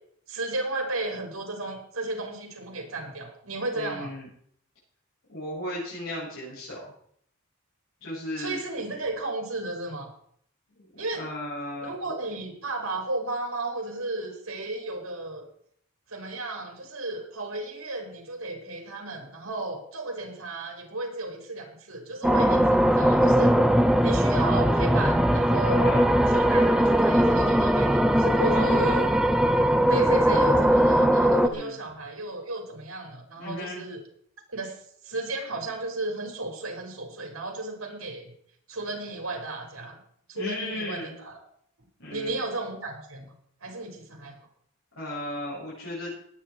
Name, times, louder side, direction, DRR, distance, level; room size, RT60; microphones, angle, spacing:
voice 1, 0.3-4.1 8.4-10.1 11.0-11.3 11.8-15.4 16.1-23.6 24.0-25.9 26.3-29.1 29.9-34.0 34.5-34.8 35.0-38.3 38.7-40.0 40.3-41.4 42.1-43.3 43.6-44.4, right 2 dB, 85° right, 2 dB, 5.2 m, -34 dB
voice 2, 3.7-4.3 5.3-6.9 8.0-8.6 10.7-12.1 25.6-26.1 28.3-29.0 31.5-31.8 33.4-33.8 40.3-41.2 42.0-42.4 45.0-46.1, left 1 dB, 75° left, -8 dB, 7.5 m, -35 dB
sound 1, 22.2-31.5, equal, 5° right, 0.9 m, -20 dB
20.0 x 9.6 x 4.6 m, 0.64 s
head